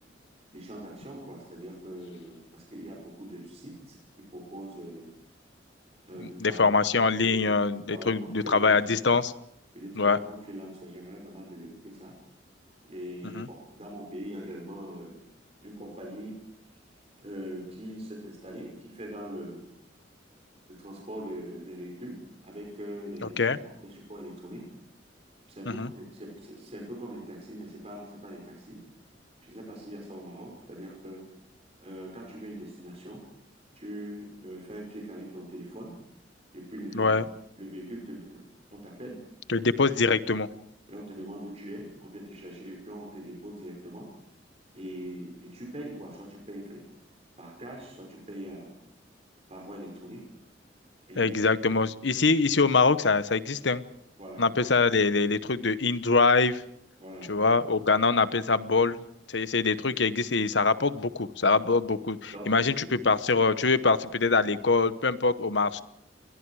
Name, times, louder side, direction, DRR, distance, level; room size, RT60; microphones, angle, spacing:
voice 1, 0.5-4.0 4.3-5.1 6.1-6.6 7.2-7.5 7.9-9.0 9.7-12.1 12.9-15.2 15.6-16.4 17.2-19.6 20.7-24.7 25.5-28.8 29.4-31.2 31.8-33.2 33.8-35.9 36.5-37.1 37.5-38.4 38.7-39.2 39.6-39.7 40.9-44.1 44.7-46.8 47.4-48.7 49.5-50.2 51.1-51.4 54.2-54.4 57.0-57.3 62.3-62.9, equal, 35° right, -1 dB, 5.6 m, -42 dB
voice 2, 6.4-9.3 10.0-10.2 13.3-13.5 23.2-23.6 25.7-25.9 36.9-37.2 39.5-40.5 51.2-53.8 54.4-56.6 57.3-59.0 59.3-65.8, left 4 dB, 70° left, 13 dB, 1.1 m, -24 dB
29.5 x 22.5 x 4.9 m, 0.75 s
head